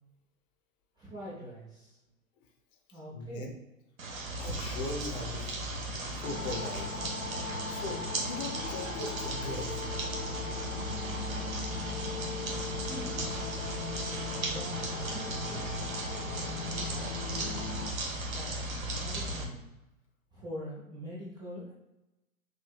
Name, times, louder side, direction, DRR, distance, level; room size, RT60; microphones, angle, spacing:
voice 1, 1.0-2.0 2.9-3.5 12.9-13.5 14.4-15.9 16.3-17.7 18.3-18.7 19.0-19.7 20.3-21.7, equal, 10° right, -7 dB, 0.5 m, -44 dB
voice 2, 3.1-3.5 4.4-5.5 6.1-7.0 7.7-9.8, left 2 dB, 30° left, 1 dB, 0.8 m, -39 dB
sound 1, 4.0-19.4, right 2 dB, 70° right, 1.0 m, -36 dB
sound 2, 6.2-17.9, left 5 dB, 80° left, 0.6 m, -40 dB
6.4 x 2.6 x 2.3 m, 0.95 s
figure-of-eight pair, 110°, 42 cm